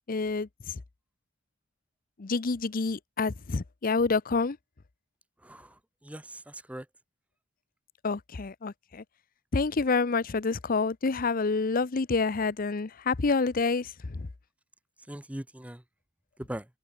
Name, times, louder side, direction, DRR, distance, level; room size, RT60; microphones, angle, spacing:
voice 1, 0.1-0.8 2.2-4.6 8.0-9.0 9.5-14.3, left 4 dB, 45° left, 0.6 m, -28 dB
voice 2, 5.4-5.7 6.0-6.9 15.1-15.8 16.4-16.7, right 1 dB, 5° right, 0.7 m, -40 dB
head